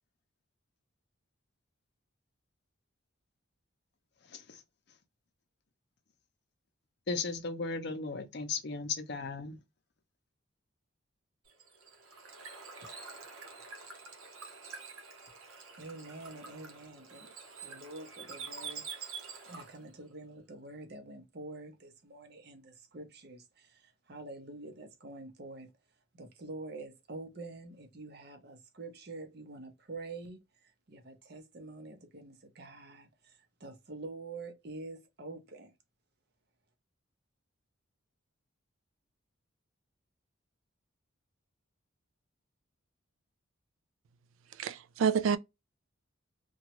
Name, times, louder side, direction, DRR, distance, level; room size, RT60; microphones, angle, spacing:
voice 1, 4.3-4.6 7.1-9.6, left 4 dB, 50° left, 0.6 m, -36 dB
Bird / Water, 11.5-19.9, right 5 dB, 90° right, 0.8 m, -47 dB
voice 2, 15.8-17.3 17.6-25.7 26.1-35.7, right 2 dB, 50° right, 0.7 m, -47 dB
voice 3, 44.6-45.4, right 7 dB, 70° right, 0.3 m, -28 dB
2.9 x 2.3 x 2.9 m
head